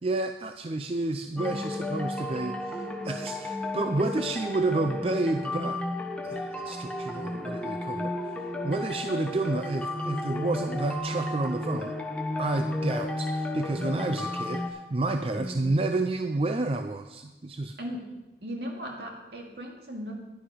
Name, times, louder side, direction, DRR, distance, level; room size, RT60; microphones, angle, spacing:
voice 1, 0.0-5.8 6.2-11.9 12.4-17.8, right 2 dB, 35° right, 7 dB, 0.4 m, -30 dB
sound 1, 1.4-14.7, left 1 dB, 5° left, 1.0 m, -33 dB
voice 2, 15.1-15.7 17.8-18.0 18.4-20.1, equal, 65° right, 0 dB, 2.3 m, -37 dB
10.5 x 10.0 x 5.1 m, 1.1 s
head